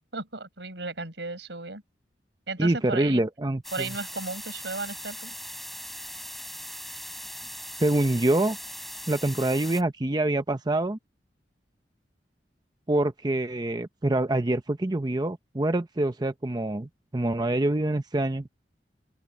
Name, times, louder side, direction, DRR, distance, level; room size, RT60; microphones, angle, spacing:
voice 1, 0.1-1.8 2.5-3.2 3.7-5.4, right 3 dB, 85° right, 5.4 m, -35 dB
voice 2, 2.6-3.9 7.8-8.6 9.1-11.0 12.9-18.5, right 1 dB, 25° right, 0.7 m, -25 dB
sound 1, 3.6-9.8, equal, ahead, 7.9 m, -39 dB
open air
head